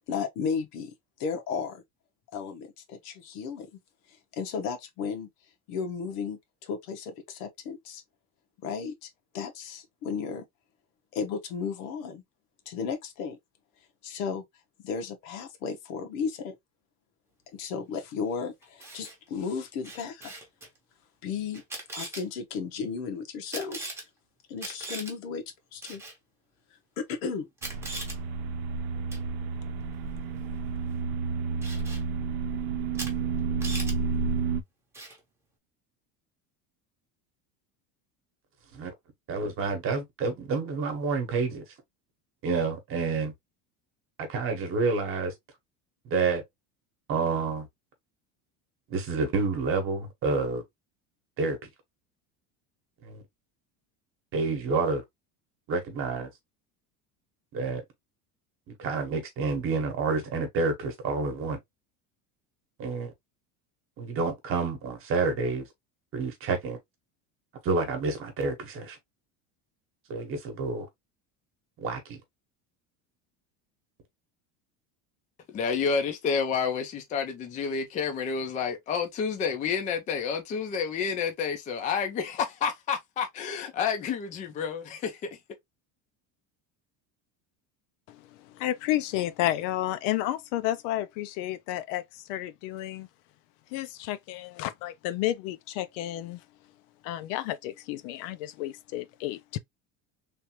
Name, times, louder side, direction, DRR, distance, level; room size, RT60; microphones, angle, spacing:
voice 1, 0.1-0.9 1.2-1.8 2.3-3.7 4.1-5.3 5.7-8.0 8.6-9.1 9.3-10.4 11.1-12.2 12.7-13.4 14.0-14.4 14.8-16.5 17.5-20.3 21.2-21.6 21.9-23.8 24.5-25.4 25.7-26.0 26.7-27.5, left 6 dB, 90° left, 1.2 m, -34 dB
Camera, 18.6-19.1 19.8-20.7 21.5-22.2 23.5-24.0 24.6-25.1 25.8-26.2 27.1-27.2 27.6-28.2 29.1-29.3 31.6-32.0 32.9-33.1 33.4-33.9 34.9-35.2, right 2 dB, 5° right, 0.8 m, -39 dB
sound 1, 27.6-34.6, right 4 dB, 60° right, 0.7 m, -31 dB
voice 2, 39.3-41.6 42.4-43.3 44.2-45.3 46.0-46.4 47.1-47.7 48.9-50.6 51.4-51.7 53.0-53.2 54.3-55.0 55.7-56.3 57.5-57.8 58.7-61.6 62.8-63.1 64.0-65.7 66.1-66.8 67.6-69.0 70.1-70.9 71.8-72.2, right 4 dB, 35° right, 1.0 m, -29 dB
voice 3, 75.5-85.3, left 6 dB, 20° left, 0.4 m, -29 dB
voice 4, 88.1-93.1 93.7-96.4 97.0-99.6, left 14 dB, 70° left, 0.5 m, -31 dB
3.3 x 2.5 x 2.8 m
cardioid pair, 170°, 39 cm